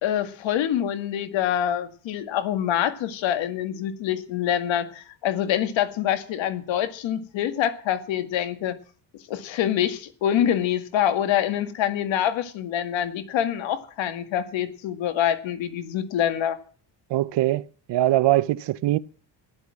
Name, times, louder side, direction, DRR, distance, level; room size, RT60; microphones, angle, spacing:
voice 1, 0.0-8.8 9.3-16.6, left 10 dB, 85° left, 2.1 m, -25 dB
voice 2, 17.1-19.0, right 15 dB, 65° right, 0.9 m, -22 dB
14.5 x 11.0 x 7.6 m
cardioid pair, 135°, 44 cm